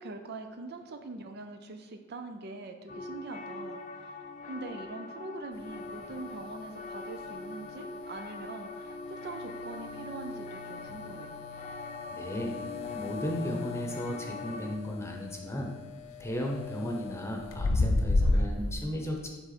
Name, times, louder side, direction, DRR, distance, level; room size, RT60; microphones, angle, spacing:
voice 1, 0.0-4.1 4.5-11.3, right 3 dB, 55° right, 6 dB, 0.5 m, -43 dB
sound 1, 2.9-14.8, left 2 dB, 40° left, 0.5 m, -43 dB
sound 2, 5.5-18.7, left 2 dB, 85° left, 0.5 m, -35 dB
voice 2, 12.1-12.6 12.9-15.7 16.2-19.3, equal, 15° left, 1 dB, 0.8 m, -35 dB
7.8 x 3.6 x 4.2 m, 1.4 s
head